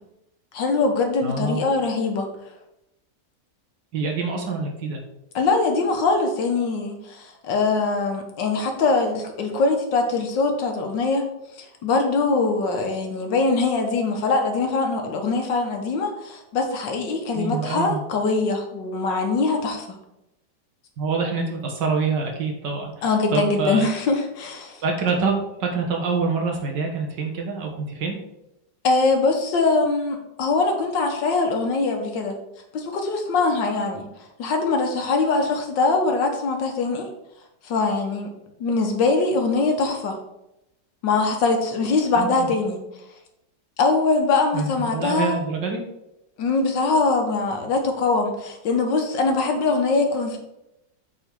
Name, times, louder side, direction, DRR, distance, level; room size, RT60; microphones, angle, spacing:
voice 1, 0.5-2.3 5.4-11.2 11.6-20.0 23.0-24.8 28.8-32.4 32.7-34.1 34.4-37.1 37.6-38.3 38.6-40.2 41.0-42.8 43.8-45.3 46.4-50.4, left 3 dB, 85° left, 3 dB, 1.8 m, -22 dB
voice 2, 1.2-1.6 3.9-5.0 17.4-18.0 21.0-23.0 23.3-23.9 24.8-28.2 42.2-42.5 44.5-45.8, right 4 dB, 75° right, 1 dB, 2.0 m, -26 dB
7.8 x 4.0 x 4.6 m, 0.87 s
omnidirectional pair, 1.9 m